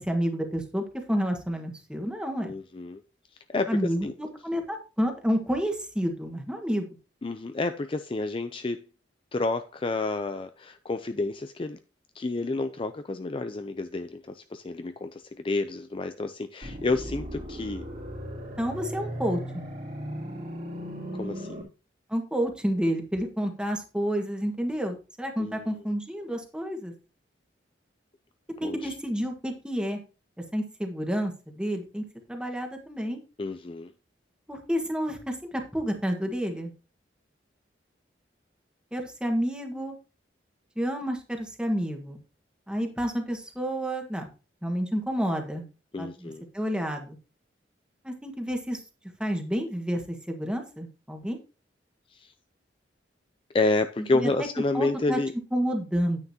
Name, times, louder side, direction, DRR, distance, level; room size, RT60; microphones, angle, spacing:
voice 1, 0.0-2.5 3.7-6.9 18.6-19.6 22.1-26.9 28.6-30.0 30.5-32.0 32.3-33.2 34.5-36.7 38.9-39.9 40.8-42.2 42.7-44.3 44.6-45.7 46.0-47.2 48.0-48.8 49.2-51.4 54.1-54.3 54.7-55.2 55.5-56.2, equal, 5° right, 1.5 m, -29 dB
voice 2, 2.4-3.0 3.5-4.1 7.2-8.8 9.3-11.8 12.1-17.9 21.1-21.7 25.4-25.7 28.6-28.9 33.4-33.9 45.9-46.4 52.1-52.3 53.5-55.3, left 3 dB, 30° left, 0.4 m, -30 dB
sound 1, 16.6-21.6, equal, 45° right, 2.7 m, -37 dB
9.6 x 9.1 x 2.8 m
head